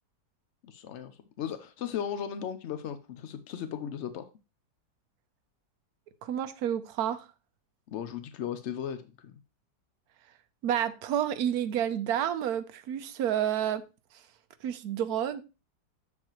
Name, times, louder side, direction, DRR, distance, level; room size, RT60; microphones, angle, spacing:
voice 1, 0.6-4.3 7.9-9.4, left 9 dB, 80° left, 0.6 m, -36 dB
voice 2, 6.2-7.3 10.6-13.8 14.6-15.4, right 10 dB, 70° right, 1.1 m, -29 dB
7.3 x 7.2 x 3.0 m
omnidirectional pair, 1.9 m